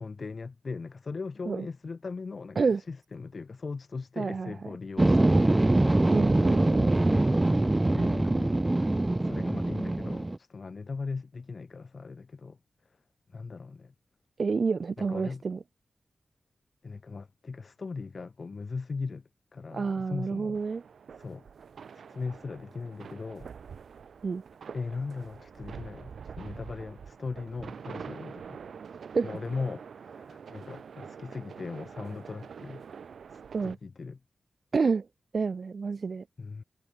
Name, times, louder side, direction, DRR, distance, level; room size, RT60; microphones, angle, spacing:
voice 1, 0.0-6.0 7.9-8.6 9.2-12.6 13.3-13.9 15.0-15.4 16.8-19.2 19.5-20.6 21.1-21.4 21.9-23.5 24.7-28.6 29.2-32.8 33.3-34.2 36.4-36.6, left 4 dB, 55° left, 1.2 m, -39 dB
voice 2, 4.2-4.5 6.1-7.2 14.4-15.6 19.7-20.8 24.2-24.4 29.1-29.3 33.5-33.8 34.7-35.0 35.3-36.2, right 4 dB, 60° right, 1.1 m, -29 dB
sound 1, 5.0-10.4, right 2 dB, 25° right, 1.0 m, -23 dB
sound 2, 20.5-33.8, right 6 dB, 85° right, 1.1 m, -45 dB
cardioid pair, 70°, 0 cm